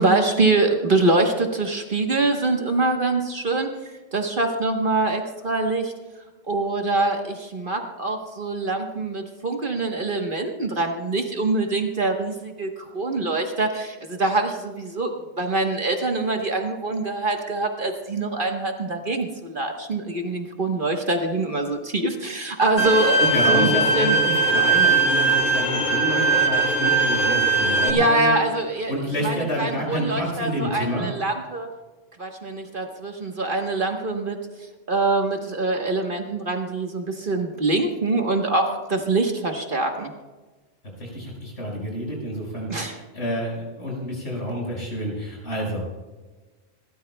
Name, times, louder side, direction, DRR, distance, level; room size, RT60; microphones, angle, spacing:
voice 1, 0.0-5.9 6.5-24.2 27.8-28.9 29.2-31.7 32.2-34.4 34.9-40.1 42.7-42.9, right 2 dB, 45° right, 3 dB, 1.3 m, -24 dB
Bowed string instrument, 22.8-27.9, right 3 dB, 80° left, 1.7 m, -20 dB
voice 2, 23.3-28.3 28.9-31.1 41.0-45.8, equal, 65° left, -2 dB, 5.5 m, -28 dB
27.0 x 13.5 x 2.2 m, 1.2 s
omnidirectional pair, 1.3 m